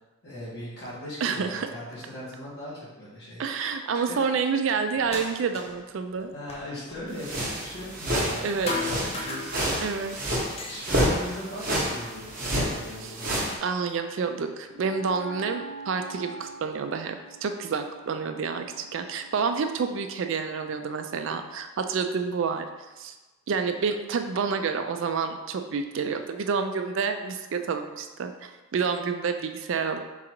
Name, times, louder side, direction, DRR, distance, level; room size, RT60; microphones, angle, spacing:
voice 1, 0.2-3.7 4.1-4.2 6.3-10.1 10.7-13.4, left 1 dB, 50° left, -8 dB, 1.3 m, -39 dB
voice 2, 1.2-1.7 3.4-6.3 8.4-8.8 9.2-9.3 9.8-10.2 13.6-22.7 23.0-23.1 23.5-30.0, right 5 dB, 55° right, 7 dB, 0.3 m, -29 dB
sound 1, 5.0-5.9 6.2-8.4 8.7-10.0 10.4-12.3 12.9-13.8 14.8-14.9 15.5-16.5, left 3 dB, 25° left, 0.4 m, -38 dB
sound 2, 7.2-13.6, equal, 40° right, 1.0 m, -29 dB
Wind instrument woodwind instrument, 14.7-21.4, right 3 dB, 85° left, 1.0 m, -45 dB
3.9 x 2.5 x 4.4 m, 1.2 s
head